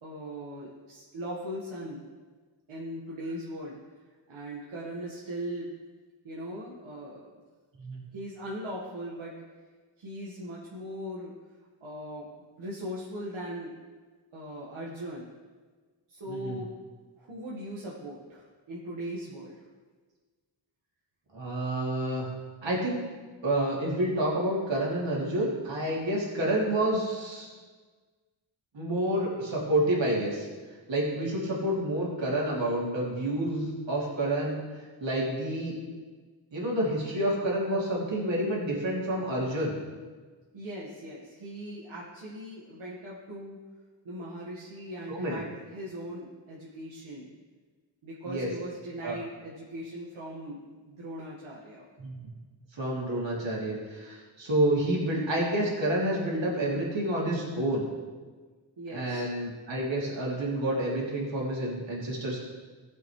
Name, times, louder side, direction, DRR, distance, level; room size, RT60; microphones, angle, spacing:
voice 1, 0.0-2.0 2.7-3.8 4.3-5.7 6.2-7.4 8.1-9.3 10.0-11.3 11.8-12.3 12.6-13.7 14.3-15.3 16.1-16.8 17.2-19.5 40.5-43.6 44.1-47.3 48.0-51.8 58.8-59.3, equal, 90° right, -6 dB, 1.8 m, -39 dB
voice 2, 16.3-16.6 21.3-22.3 22.6-23.0 23.4-27.5 28.7-30.5 30.9-34.6 35.0-35.8 36.5-39.8 45.1-45.3 48.2-48.5 49.0-49.2 52.0-52.4 52.7-57.9 58.9-62.4, right 1 dB, 70° right, -4 dB, 2.9 m, -29 dB
16.0 x 7.5 x 3.3 m, 1.4 s
wide cardioid pair, 95°, 47 cm